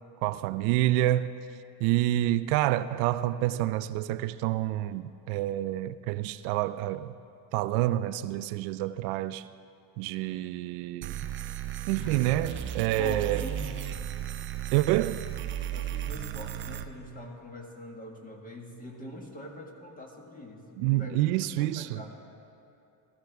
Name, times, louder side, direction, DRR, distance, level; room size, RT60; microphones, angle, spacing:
voice 1, 0.2-1.3 1.8-7.1 7.5-9.5 10.0-11.2 11.9-13.4 14.7-15.3 20.8-22.0, right 15 dB, 75° right, 0.6 m, -28 dB
sound 1, 11.0-16.8, right 11 dB, 30° right, 0.4 m, -35 dB
Sigh, 11.9-12.5, right 1 dB, ahead, 2.8 m, -43 dB
voice 2, 13.0-13.6 15.7-21.2 21.5-22.2, left 1 dB, 20° left, 1.6 m, -43 dB
19.0 x 15.0 x 3.5 m
cardioid pair, 145°, 46 cm